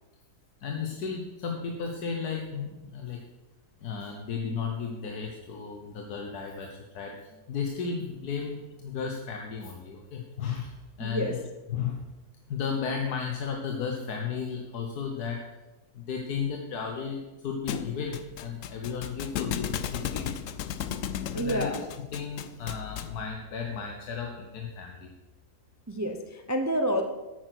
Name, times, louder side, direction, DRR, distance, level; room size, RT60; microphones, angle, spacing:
voice 1, 0.6-3.2 3.8-11.4 11.7-12.1 12.5-15.5 15.9-20.3 21.3-21.7 22.1-25.1, left 6 dB, 85° left, 2 dB, 1.6 m, -34 dB
voice 2, 11.0-11.3 21.3-21.8 25.9-27.0, equal, 20° right, 5 dB, 0.4 m, -28 dB
Thump thud, 17.7-23.2, left 9 dB, 65° left, 0.9 m, -35 dB
9.2 x 9.0 x 6.1 m, 1.1 s
omnidirectional pair, 1.6 m